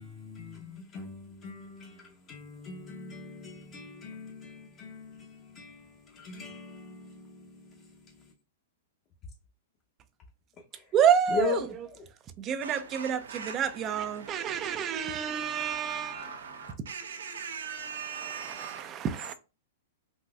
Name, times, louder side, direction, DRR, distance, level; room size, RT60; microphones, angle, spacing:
voice 1, 0.0-5.8 6.1-7.4 11.3-11.6, left 4 dB, 30° left, 0.6 m, -38 dB
voice 2, 10.9-11.9 12.4-16.3 17.9-19.3, right 8 dB, 30° right, 0.3 m, -29 dB
voice 3, 12.6-19.1, right 6 dB, 85° right, 0.6 m, -42 dB
4.0 x 2.5 x 2.3 m
hypercardioid pair, 135°, 0 cm